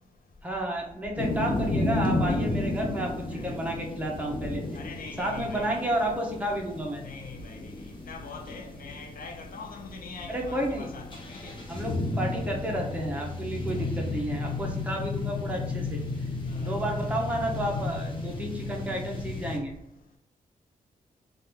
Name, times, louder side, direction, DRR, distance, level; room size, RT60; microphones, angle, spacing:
voice 1, 0.4-4.6 5.2-7.0 10.3-10.9 11.7-16.0 16.6-19.7, right 1 dB, 10° right, 0.7 m, -31 dB
sound 1, 1.2-19.6, left 2 dB, 35° left, 0.7 m, -33 dB
voice 2, 4.7-5.9 7.0-7.7 8.0-11.6 13.7-13.9 16.5-16.9, left 4 dB, 70° left, 0.6 m, -43 dB
2.7 x 2.5 x 3.6 m
cardioid pair, 100°, 15 cm